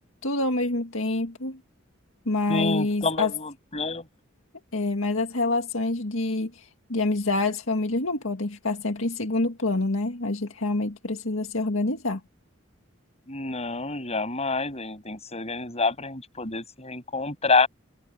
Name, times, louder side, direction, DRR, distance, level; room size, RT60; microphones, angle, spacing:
voice 1, 0.2-1.6 2.3-3.3 4.7-12.2, left 2 dB, 80° left, 2.0 m, -26 dB
voice 2, 2.5-4.1 13.3-17.7, left 3 dB, 30° left, 7.7 m, -27 dB
head